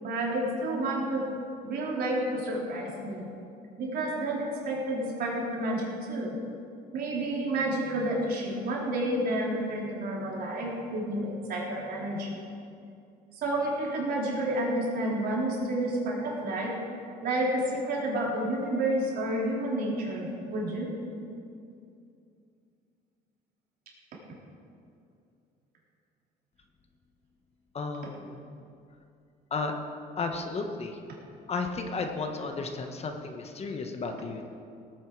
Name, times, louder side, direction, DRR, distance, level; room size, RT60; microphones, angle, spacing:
voice 1, 0.0-1.3 1.6-3.3 3.8-6.3 6.9-12.5 13.3-20.9, right 1 dB, 65° right, -3 dB, 3.9 m, -30 dB
voice 2, 27.7-28.4 29.5-29.7 30.2-31.0 31.5-34.5, left 4 dB, 40° left, 4 dB, 1.4 m, -33 dB
18.0 x 9.4 x 4.8 m, 2.4 s
cardioid pair, 110°, 17 cm